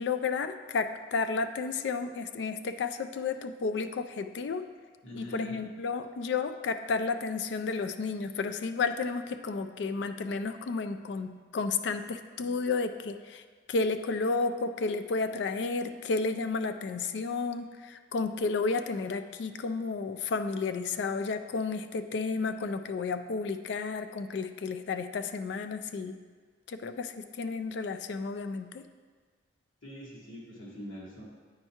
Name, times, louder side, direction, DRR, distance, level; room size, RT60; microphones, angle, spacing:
voice 1, 0.0-4.6 5.1-26.2 26.7-28.8, left 4 dB, 60° left, 9 dB, 0.3 m, -32 dB
voice 2, 5.0-5.6 29.8-31.2, equal, 80° left, -6 dB, 1.4 m, -43 dB
8.8 x 4.5 x 2.8 m, 1.5 s
head